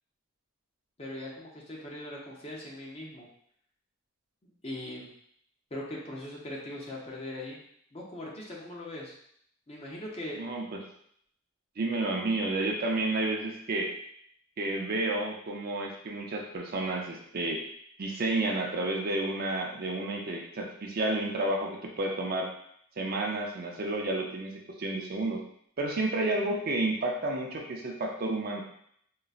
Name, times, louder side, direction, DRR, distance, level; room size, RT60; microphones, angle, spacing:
voice 1, 1.0-3.3 4.4-5.1 5.7-7.6 7.9-9.2 9.7-10.4, left 1 dB, 30° left, -4 dB, 0.6 m, -40 dB
voice 2, 10.4-10.8 11.8-13.9 14.6-17.6 18.0-22.5 23.0-24.5 24.8-25.4 25.8-28.6, right 2 dB, 45° right, 0 dB, 0.5 m, -31 dB
3.8 x 2.1 x 2.4 m, 0.67 s
head